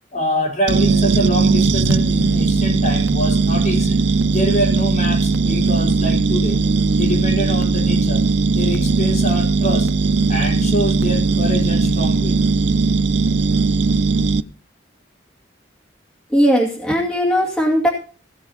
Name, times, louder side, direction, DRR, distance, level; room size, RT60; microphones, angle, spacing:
voice 1, 0.1-4.0 4.3-6.6 6.9-8.3 8.5-9.9 10.3-12.4, equal, 40° left, 4.6 m, -25 dB
sound 1, 0.7-14.4, right 4 dB, 65° right, 0.6 m, -18 dB
voice 2, 16.3-17.9, equal, 5° left, 2.3 m, -17 dB
17.0 x 6.9 x 4.3 m
head